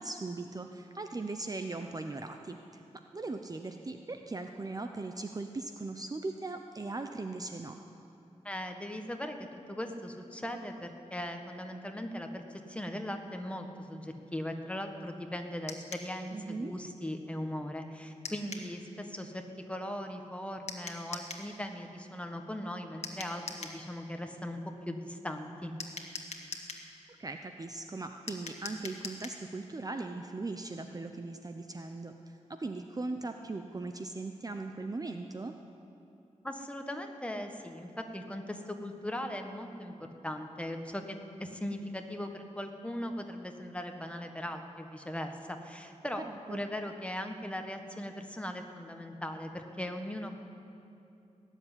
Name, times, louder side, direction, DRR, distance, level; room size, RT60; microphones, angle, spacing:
voice 1, 0.0-2.8 3.1-7.8 16.3-16.7 27.2-35.5 46.2-46.6, right 3 dB, 30° right, 6 dB, 0.7 m, -39 dB
voice 2, 8.4-19.4 19.7-24.6 24.9-25.7 36.4-46.2 46.5-50.3, left 1 dB, 10° left, 4 dB, 1.4 m, -39 dB
sound 1, 15.7-16.1 18.2-18.7 20.7-21.5 23.0-23.8 25.8-26.9 28.3-29.4, left 4 dB, 65° left, 1.6 m, -42 dB
19.0 x 7.4 x 9.9 m, 2.7 s
wide cardioid pair, 90°, 12 cm